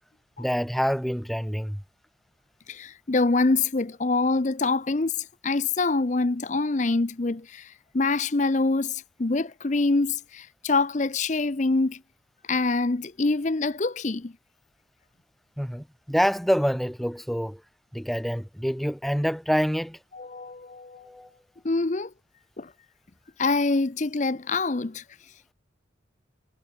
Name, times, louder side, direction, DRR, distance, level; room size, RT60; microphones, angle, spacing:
voice 1, 0.4-1.8 15.6-17.6 17.9-20.0 21.0-21.3, equal, ahead, 2.7 m, -26 dB
voice 2, 2.7-12.0 12.5-14.3 20.1-21.1 21.6-22.1 22.6-22.7 23.4-25.0, left 3 dB, 40° left, 0.6 m, -25 dB
head